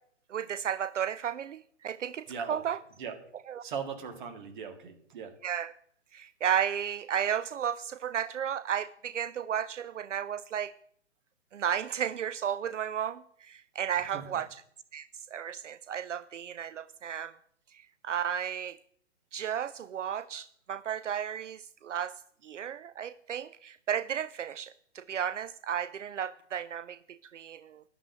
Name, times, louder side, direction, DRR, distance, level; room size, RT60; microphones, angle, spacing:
voice 1, 0.3-2.8 3.5-3.6 5.4-5.7 6.1-10.7 11.5-14.6 14.9-17.3 17.7-18.8 19.3-22.1 22.4-27.8, right 9 dB, 80° right, 17 dB, 0.5 m, -33 dB
voice 2, 2.3-2.6 3.0-3.2 3.6-5.3 14.1-14.3, right 6 dB, 40° right, 7 dB, 1.8 m, -39 dB
11.0 x 5.7 x 8.0 m, 0.66 s
figure-of-eight pair, 130°, 36 cm